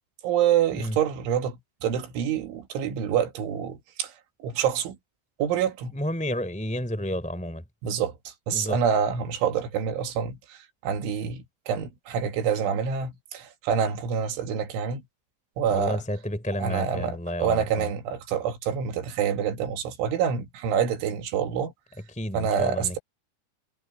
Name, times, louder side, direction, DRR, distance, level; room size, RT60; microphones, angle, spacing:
voice 1, 0.2-4.1 4.4-5.0 5.4-6.0 7.8-8.1 8.5-10.6 10.8-15.0 15.6-16.0 16.6-21.7 22.3-23.0, right 8 dB, 85° right, 4.7 m, -27 dB
voice 2, 5.9-7.6 8.5-8.8 15.7-17.9 22.1-23.0, equal, ahead, 3.4 m, -31 dB
omnidirectional pair, 5.3 m